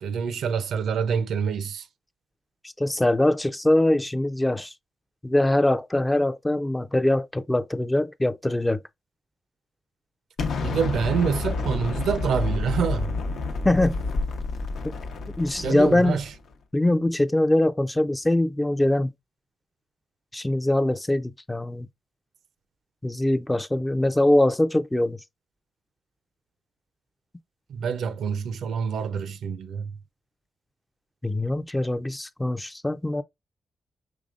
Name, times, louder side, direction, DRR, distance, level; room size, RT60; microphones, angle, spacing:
voice 1, 0.0-1.9 10.6-13.1 15.6-16.2 27.7-29.9, right 6 dB, 85° right, 0.5 m, -26 dB
voice 2, 2.8-4.7 5.2-8.8 13.6-14.0 15.4-16.2 16.7-19.1 20.3-21.9 23.0-25.2 31.2-33.2, left 1 dB, 10° left, 0.3 m, -22 dB
Explosion, 10.4-16.4, left 3 dB, 80° left, 0.7 m, -29 dB
5.1 x 3.4 x 2.4 m
cardioid pair, 105°, 0 cm